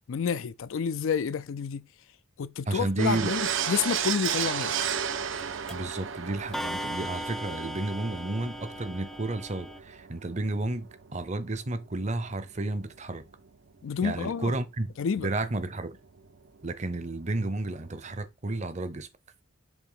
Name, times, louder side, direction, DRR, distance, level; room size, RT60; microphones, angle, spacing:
voice 1, 0.1-1.9 2.4-4.8 13.8-14.5 15.0-15.3, left 6 dB, 75° left, 0.4 m, -29 dB
voice 2, 2.7-3.3 5.7-13.2 14.0-14.9 15.2-16.0 16.6-19.1, right 2 dB, 35° right, 0.7 m, -32 dB
sound 1, 3.0-12.7 13.0-13.1 13.3-13.4 15.9-16.0 16.2-16.3 16.5-18.3, right 8 dB, 70° right, 0.6 m, -34 dB
Clock, 4.2-4.3 5.4-5.5 5.7-6.0 6.5-9.8, equal, ahead, 0.3 m, -37 dB
7.2 x 2.8 x 5.6 m
head